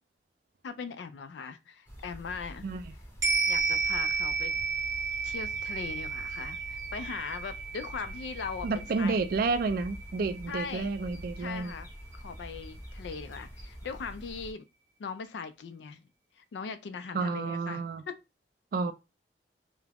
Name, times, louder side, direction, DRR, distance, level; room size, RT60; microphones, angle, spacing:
voice 1, 0.6-2.7 3.5-4.5 5.2-9.2 10.5-10.9 11.4-11.9 12.1-14.7 15.0-16.0 16.4-17.8, left 5 dB, 80° left, 0.4 m, -39 dB
sound 1, 1.9-14.5, equal, 15° left, 0.8 m, -46 dB
sound 2, 3.2-11.8 12.1-12.2, right 5 dB, 20° right, 0.7 m, -33 dB
voice 2, 8.6-11.7 17.1-18.0 18.7-18.9, right 4 dB, 55° right, 0.3 m, -30 dB
2.3 x 2.0 x 3.3 m
head